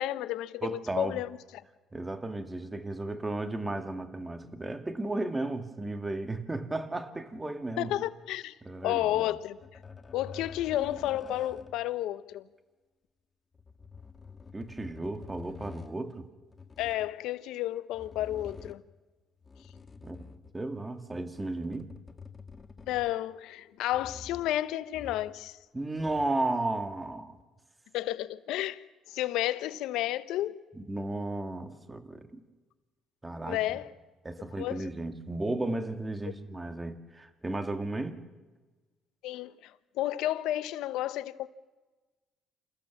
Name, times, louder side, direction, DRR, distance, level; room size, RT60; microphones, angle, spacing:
voice 1, 0.0-1.4 7.8-8.5 8.8-9.6 10.1-12.4 16.8-18.8 22.9-25.5 27.9-28.8 29.1-30.6 33.5-33.9 34.6-34.9 39.2-39.5 40.0-41.5, left 14 dB, 80° left, 0.9 m, -31 dB
voice 2, 0.6-1.2 1.9-7.9 8.6-9.3 14.5-16.3 20.0-20.2 20.5-21.9 25.7-27.3 30.7-32.4 33.2-33.6 34.2-38.2, right 2 dB, 15° right, 2.3 m, -34 dB
sound 1, 9.6-11.9 13.5-16.0 16.5-17.2 17.9-18.9 19.4-20.7 21.3-23.3 23.9-24.6 24.9-25.5 25.7-26.4 27.3-27.4, left 5 dB, 30° left, 1.6 m, -48 dB
28.0 x 15.0 x 7.3 m
supercardioid pair, 75°, 0 cm